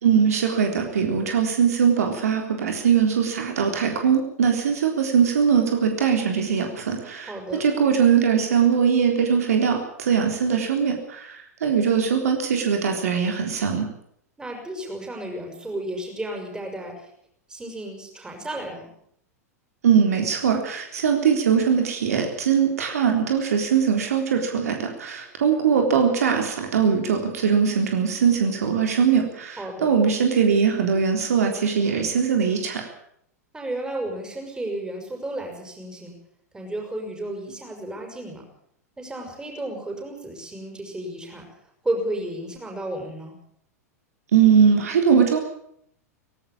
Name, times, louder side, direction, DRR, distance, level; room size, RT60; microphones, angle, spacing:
voice 1, 0.0-7.3 7.6-13.9 19.8-32.9 44.3-45.4, right 7 dB, 65° right, 4 dB, 3.8 m, -21 dB
voice 2, 7.3-7.6 14.4-17.1 17.5-18.9 29.6-29.9 33.5-36.2 36.5-38.4 39.0-41.5 41.8-43.4, right 1 dB, 10° right, 1 dB, 6.4 m, -32 dB
18.5 x 17.0 x 8.7 m, 0.69 s
figure-of-eight pair, 95°, 9 cm